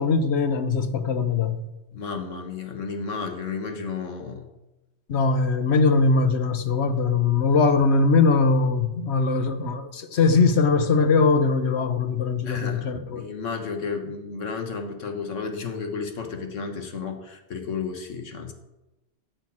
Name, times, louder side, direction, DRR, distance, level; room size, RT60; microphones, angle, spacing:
voice 1, 0.0-1.6 5.1-13.3, left 4 dB, 65° left, 1.2 m, -21 dB
voice 2, 1.9-4.5 5.7-5.8 12.4-18.5, left 5 dB, 80° left, 1.7 m, -32 dB
10.0 x 6.9 x 8.6 m
omnidirectional pair, 1.3 m